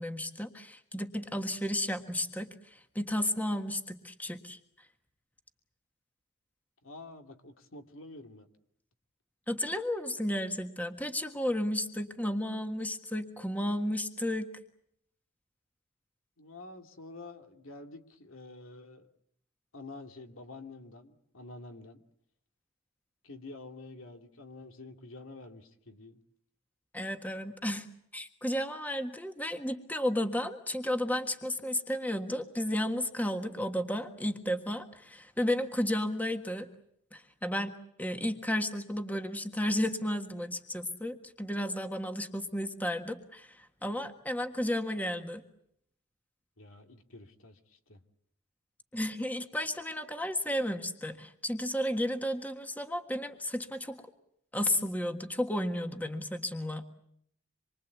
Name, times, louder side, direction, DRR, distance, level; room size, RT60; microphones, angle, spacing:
voice 1, 0.0-4.6 9.5-14.5 26.9-27.9 28.1-36.7 37.1-45.4 48.9-54.0 54.5-56.9, left 1 dB, 10° left, 6 dB, 1.5 m, -33 dB
voice 2, 6.8-8.5 16.4-19.1 19.7-22.0 23.2-26.2 46.6-48.0, left 2 dB, 80° left, 5 dB, 2.5 m, -48 dB
26.5 x 23.5 x 8.2 m, 0.72 s
head